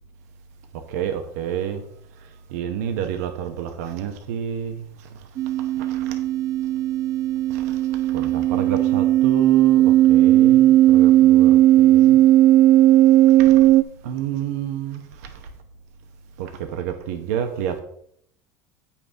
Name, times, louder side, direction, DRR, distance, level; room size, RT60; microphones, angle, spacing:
voice 1, 0.7-1.8 2.2-5.3 5.6-6.2 7.5-12.2 13.3-13.7 14.0-15.5 16.4-17.8, right 9 dB, 80° right, 0.9 m, -30 dB
sound 1, 5.4-13.8, right 14 dB, 45° right, 0.5 m, -16 dB
8.4 x 5.7 x 4.5 m
supercardioid pair, 100°, 8 cm